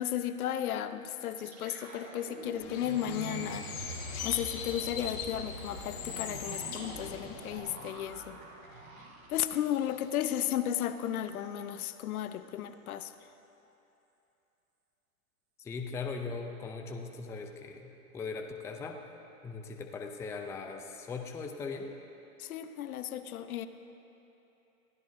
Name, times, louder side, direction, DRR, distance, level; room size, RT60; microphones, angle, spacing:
voice 1, 0.0-3.7 4.2-8.4 9.3-13.1 22.4-23.7, left 11 dB, 75° left, 11 dB, 0.9 m, -34 dB
sound 1, 1.3-10.3 10.6-10.8 11.2-11.5, right 2 dB, 80° right, 3.6 m, -46 dB
Bird, 2.6-7.6, left 6 dB, 50° left, 3.0 m, -41 dB
voice 2, 15.6-19.0 19.4-21.9, left 4 dB, 5° left, 3 dB, 0.4 m, -39 dB
22.0 x 15.5 x 2.7 m, 2.9 s
hypercardioid pair, 125°, 44 cm